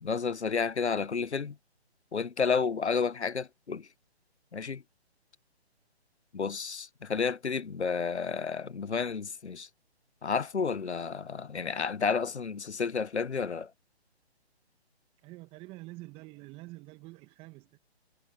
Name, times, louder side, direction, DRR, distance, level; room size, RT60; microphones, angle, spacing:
voice 1, 0.0-1.6 2.1-3.9 4.5-4.8 6.3-9.7 10.2-13.7, left 5 dB, 85° left, 0.9 m, -31 dB
voice 2, 15.2-17.8, right 21 dB, 15° right, 2.0 m, -47 dB
figure-of-eight pair, 145°, 33 cm